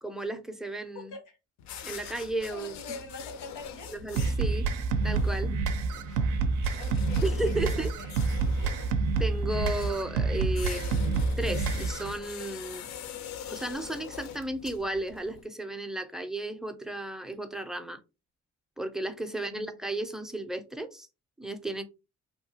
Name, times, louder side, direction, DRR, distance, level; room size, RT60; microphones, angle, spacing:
voice 1, 0.0-1.1 1.8-3.0 3.9-4.7 5.0-5.6 7.2-7.9 9.2-12.9 13.5-18.0 18.8-21.1 21.4-21.8, right 1 dB, ahead, 0.4 m, -34 dB
voice 2, 0.9-1.4 2.5-3.9 6.7-8.3 19.2-19.8, left 3 dB, 85° left, 0.9 m, -45 dB
sound 1, 1.6-15.4, left 9 dB, 65° left, 0.4 m, -44 dB
sound 2, 4.2-12.2, right 4 dB, 85° right, 0.5 m, -28 dB
2.8 x 2.3 x 2.7 m
cardioid pair, 90°, 30 cm